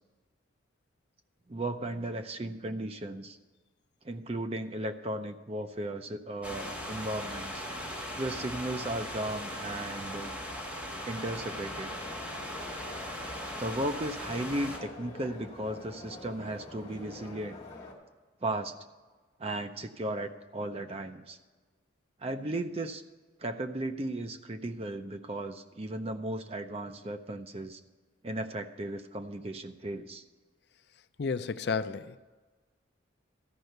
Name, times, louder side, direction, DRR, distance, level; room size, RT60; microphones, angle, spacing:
voice 1, 1.5-3.4 4.0-7.7 8.1-10.6 11.0-11.9 13.6-17.6 18.4-18.7 19.4-21.4 22.2-23.0 23.4-27.8 28.2-30.2, right 1 dB, 30° right, 0.6 m, -36 dB
sound 1, 6.4-14.8, equal, 5° right, 1.8 m, -39 dB
sound 2, 11.2-17.9, left 2 dB, 35° left, 2.0 m, -46 dB
voice 2, 31.2-32.2, left 5 dB, 55° left, 0.4 m, -31 dB
13.5 x 5.4 x 7.9 m
head